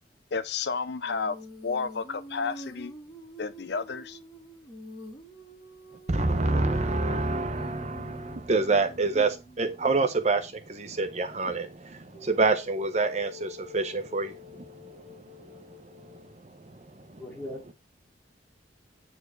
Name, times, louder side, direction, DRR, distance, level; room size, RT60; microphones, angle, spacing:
voice 1, 0.3-1.4 1.6-2.9 3.4-4.2, left 5 dB, 65° left, 0.6 m, -31 dB
Female singing, 1.0-9.9 12.1-16.3, left 1 dB, 25° left, 2.5 m, -47 dB
voice 2, 6.1-9.3 9.6-17.2, right 3 dB, 40° right, 0.8 m, -28 dB
voice 3, 17.2-17.7, left 1 dB, 10° left, 2.9 m, -38 dB
9.4 x 4.5 x 4.5 m
head